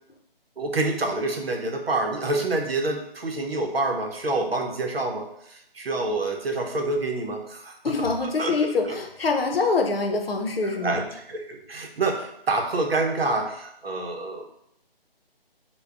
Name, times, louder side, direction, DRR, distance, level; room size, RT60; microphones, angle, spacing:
voice 1, 0.6-9.0 10.6-14.5, right 2 dB, 80° right, 2 dB, 0.7 m, -27 dB
voice 2, 7.8-11.0, left 3 dB, 75° left, 3 dB, 0.7 m, -25 dB
3.4 x 2.2 x 3.4 m, 0.75 s
figure-of-eight pair, 155°, 30 cm